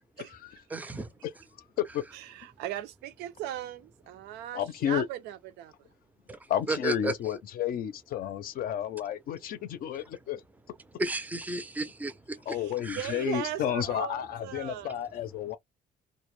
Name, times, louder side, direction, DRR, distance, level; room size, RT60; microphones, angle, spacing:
voice 1, 0.2-0.6 1.2-1.3 1.8-2.0 4.5-5.1 6.5-10.4 12.5-15.6, left 10 dB, 60° left, 0.5 m, -31 dB
voice 2, 0.7-1.1 6.3-6.4 6.7-7.1 11.0-12.4 12.8-13.0, right 2 dB, 10° right, 0.4 m, -32 dB
voice 3, 2.1-5.7 12.5-15.0, right 12 dB, 90° right, 0.4 m, -38 dB
2.1 x 2.0 x 3.0 m
cardioid pair, 110°, 17 cm